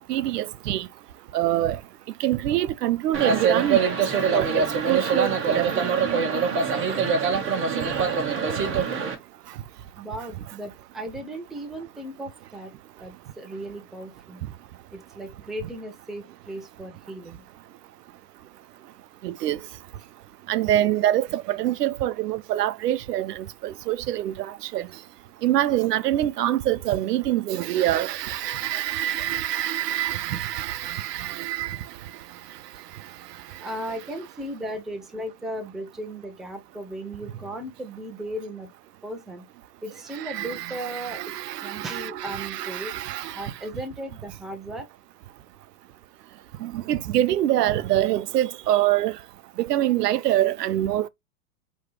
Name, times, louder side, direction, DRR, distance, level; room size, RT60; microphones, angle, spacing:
voice 1, 0.1-0.9 1.3-1.8 2.2-4.0 4.3-5.9 8.7-8.8 19.2-19.6 20.5-24.9 25.4-31.9 40.1-43.5 46.6-49.2 49.6-51.1, right 13 dB, 85° right, 0.6 m, -25 dB
sound 1, 3.1-9.1, right 5 dB, 25° right, 1.4 m, -24 dB
voice 2, 10.0-12.7 13.0-14.4 14.9-17.4 33.6-38.7 39.0-39.5 39.8-41.3 41.6-42.9 43.3-44.9, right 1 dB, ahead, 0.4 m, -36 dB
4.9 x 3.0 x 3.2 m
hypercardioid pair, 125°, 46 cm